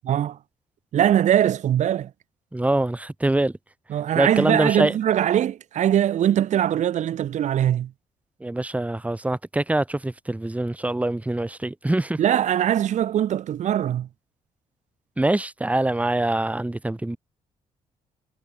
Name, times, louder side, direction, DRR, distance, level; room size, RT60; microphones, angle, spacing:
voice 1, 0.0-0.4 0.9-2.1 3.9-7.9 12.2-14.1, right 10 dB, 70° right, 3.4 m, -21 dB
voice 2, 2.5-3.5 4.2-4.9 8.4-12.2 15.2-17.2, right 2 dB, 10° right, 3.4 m, -24 dB
cardioid pair, 90°, 13 cm